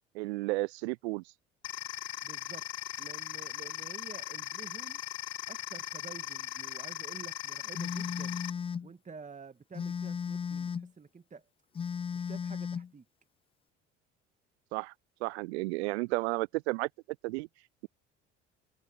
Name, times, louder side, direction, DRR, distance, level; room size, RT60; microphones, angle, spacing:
voice 1, 0.1-1.2 14.7-14.9 15.2-16.9 17.2-17.5, right 24 dB, 70° right, 0.5 m, -32 dB
sound 1, 1.6-8.5, left 15 dB, 45° left, 0.9 m, -39 dB
voice 2, 2.2-2.7 3.0-5.0 5.5-8.4 8.8-11.5 12.1-13.1, right 5 dB, 20° right, 1.7 m, -49 dB
Telephone, 7.7-8.9 9.7-10.9 11.7-12.9, left 6 dB, 15° left, 0.4 m, -35 dB
figure-of-eight pair, 60°, 35 cm